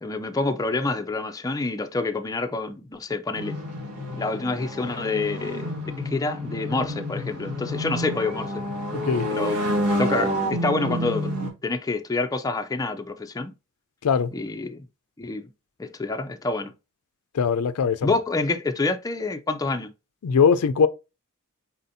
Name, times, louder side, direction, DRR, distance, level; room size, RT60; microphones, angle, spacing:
voice 1, 0.0-3.6 4.1-8.6 9.3-11.4 11.6-13.5 14.3-14.9 15.2-15.5 15.8-16.7 18.0-19.9, left 3 dB, 15° left, 0.4 m, -27 dB
sound 1, 3.3-11.5, equal, 85° right, 1.7 m, -29 dB
voice 2, 17.3-18.2 20.2-20.9, left 6 dB, 85° left, 0.4 m, -20 dB
4.2 x 4.1 x 2.6 m
head